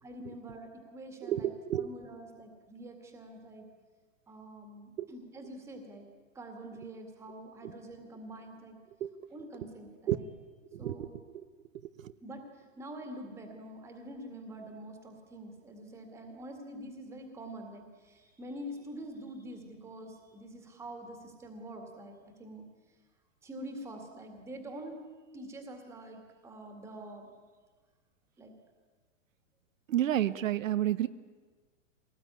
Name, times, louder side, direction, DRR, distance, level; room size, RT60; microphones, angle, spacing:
voice 1, 0.0-1.5 1.7-3.7 4.3-6.1 6.3-8.8 9.3-10.3 10.8-11.1 12.2-22.7 23.4-25.0 25.3-27.3 28.4-28.5 30.1-30.2, right 1 dB, 5° right, 4 dB, 2.0 m, -46 dB
voice 2, 1.2-1.9 5.0-5.1 7.6-7.7 9.0-9.3 10.1-10.2 10.7-11.1 11.3-11.4 12.0-12.1 29.9-31.1, right 12 dB, 80° right, 12 dB, 1.0 m, -30 dB
22.5 x 19.0 x 9.7 m, 1.4 s
supercardioid pair, 180°, 39 cm